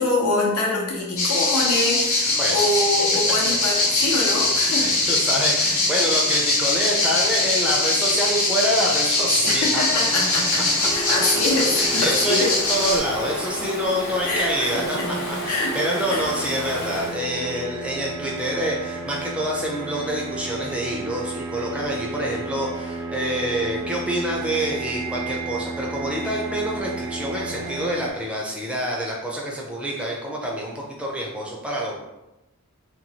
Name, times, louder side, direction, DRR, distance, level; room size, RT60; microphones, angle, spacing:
voice 1, 0.0-4.9 9.4-12.5 14.2-14.7 15.0-16.2, left 2 dB, 90° left, -2 dB, 0.8 m, -25 dB
sound 1, 1.2-13.0, left 2 dB, 65° left, 0.9 m, -22 dB
voice 2, 4.8-9.8 11.8-32.0, equal, 5° right, -3 dB, 0.4 m, -27 dB
Stream / Ocean, 9.9-17.2, left 1 dB, 45° left, 1.0 m, -34 dB
sound 2, 10.8-28.1, right 3 dB, 70° right, 0.4 m, -33 dB
2.9 x 2.3 x 2.7 m, 0.97 s
head